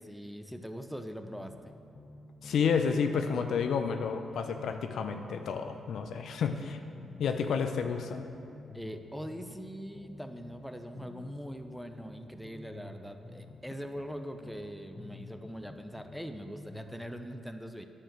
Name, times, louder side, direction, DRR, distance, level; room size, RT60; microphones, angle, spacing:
voice 1, 0.0-1.7 6.6-6.7 8.7-17.8, equal, ahead, 7 dB, 0.6 m, -42 dB
sound 1, 1.2-2.7 3.0-6.7 7.0-10.7 11.0-14.7 15.0-17.1, left 3 dB, 35° left, 1.1 m, -49 dB
voice 2, 2.4-6.8 7.2-8.2, left 6 dB, 75° left, 6 dB, 0.6 m, -30 dB
8.8 x 5.0 x 7.4 m, 2.5 s
cardioid pair, 65°, 0 cm